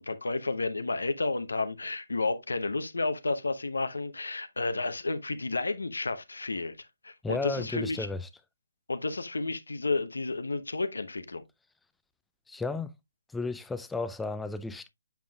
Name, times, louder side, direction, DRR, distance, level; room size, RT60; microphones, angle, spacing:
voice 1, 0.0-8.1 8.9-11.4, left 3 dB, 85° left, 0.8 m, -31 dB
voice 2, 7.2-8.3 12.5-12.9 13.3-14.9, left 3 dB, 5° left, 0.4 m, -33 dB
7.4 x 5.5 x 2.3 m
figure-of-eight pair, 145°, 0 cm